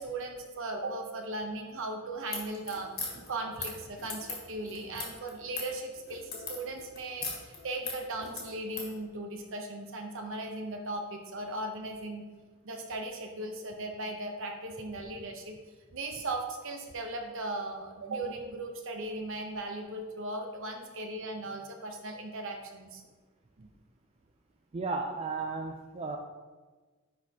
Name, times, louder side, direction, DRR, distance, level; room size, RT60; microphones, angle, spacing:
voice 1, 0.0-12.2 12.6-15.6 15.9-23.0 23.6-23.7, right 2 dB, 60° right, 4 dB, 0.8 m, -38 dB
sound 1, 2.2-8.9, left 4 dB, 45° left, 1.6 m, -40 dB
voice 2, 24.7-26.2, right 3 dB, 25° right, 3 dB, 0.3 m, -34 dB
10.5 x 4.2 x 2.9 m, 1.4 s
head